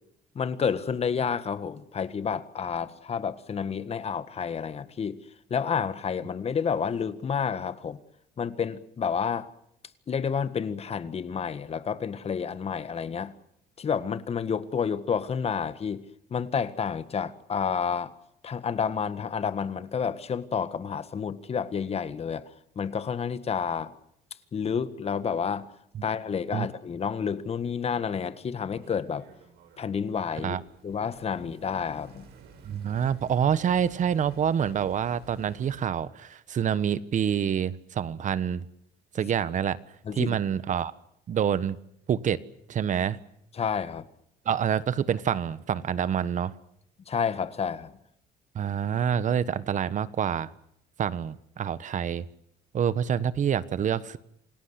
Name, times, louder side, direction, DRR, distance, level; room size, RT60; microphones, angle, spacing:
voice 1, 0.4-5.2 5.5-8.0 8.4-9.5 10.1-13.4 13.8-16.1 16.3-18.1 18.4-22.4 22.8-23.9 24.5-25.7 26.0-29.3 29.8-30.6 30.8-32.3 40.1-40.4 43.5-44.1 47.1-47.9, left 6 dB, 35° left, 1.7 m, -30 dB
sound 1, 28.7-35.9, right 6 dB, 75° right, 6.2 m, -52 dB
voice 2, 32.6-38.6 39.1-39.8 40.1-40.9 41.3-41.8 42.1-42.4 42.7-43.2 44.4-46.5 48.5-50.5 51.0-52.3 52.7-54.2, right 8 dB, 45° right, 1.3 m, -27 dB
27.5 x 18.5 x 8.2 m
cardioid pair, 110°, 17 cm